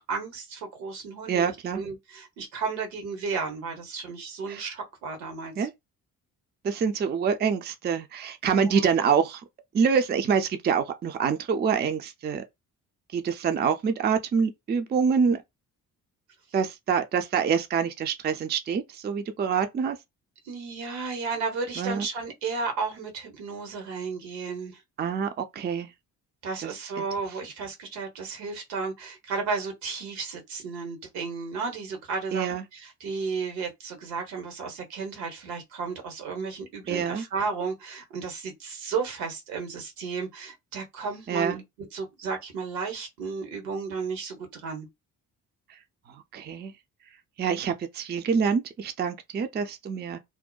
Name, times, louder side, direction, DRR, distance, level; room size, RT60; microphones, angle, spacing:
voice 1, 0.0-5.7 8.5-8.8 20.5-24.8 26.4-44.9, right 4 dB, 70° right, 1.0 m, -33 dB
voice 2, 1.3-1.8 4.5-4.6 5.6-5.7 6.6-9.4 9.7-12.4 13.1-15.4 16.5-20.0 21.8-22.1 25.0-25.9 26.6-26.7 32.3-32.6 36.9-37.2 41.3-41.6 46.3-46.7 47.4-50.2, right 6 dB, 25° right, 0.4 m, -26 dB
2.7 x 2.1 x 2.2 m
hypercardioid pair, 45°, 43 cm